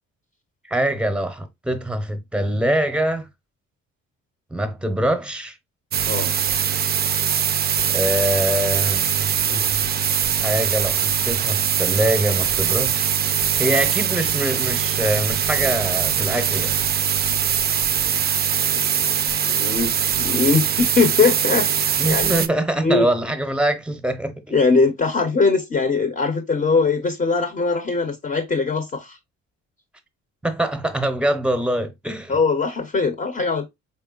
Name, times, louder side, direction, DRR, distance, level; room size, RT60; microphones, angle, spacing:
voice 1, 0.7-3.3 4.5-5.6 7.9-9.9 10.4-13.1 13.6-16.8 22.0-24.5 30.4-32.4, right 1 dB, 5° right, 0.8 m, -24 dB
sound 1, 5.9-22.5, right 8 dB, 35° right, 0.4 m, -22 dB
voice 2, 19.5-21.7 22.0-22.3 22.8-23.1 24.5-29.2 32.3-33.7, left 4 dB, 30° left, 0.7 m, -21 dB
4.5 x 3.2 x 2.3 m
cardioid pair, 90°, 30 cm